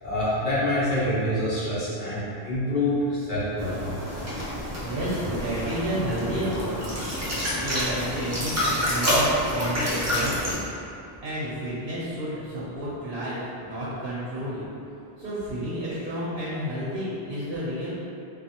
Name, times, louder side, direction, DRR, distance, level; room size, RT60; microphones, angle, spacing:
voice 1, 0.0-4.0, left 1 dB, 55° left, -11 dB, 1.1 m, -26 dB
sound 1, 3.6-10.6, equal, 20° right, 0.4 m, -28 dB
voice 2, 4.8-10.6 11.2-14.7 15.2-17.9, equal, 65° right, -9 dB, 0.8 m, -31 dB
3.2 x 2.3 x 2.8 m, 2.7 s
omnidirectional pair, 1.1 m